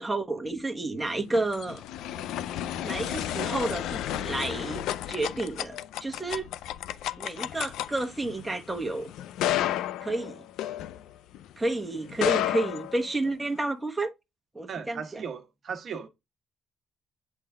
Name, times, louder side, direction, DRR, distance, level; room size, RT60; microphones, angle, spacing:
voice 1, 0.0-1.8 2.8-6.5 7.2-9.1 10.0-10.4 11.6-14.1 14.5-15.2, right 2 dB, 10° right, 1.2 m, -31 dB
sound 1, 1.1-11.5 12.1-13.6, left 12 dB, 90° left, 0.4 m, -32 dB
voice 2, 14.7-16.1, right 6 dB, 55° right, 1.1 m, -37 dB
8.4 x 3.4 x 3.6 m
cardioid pair, 90°, 0 cm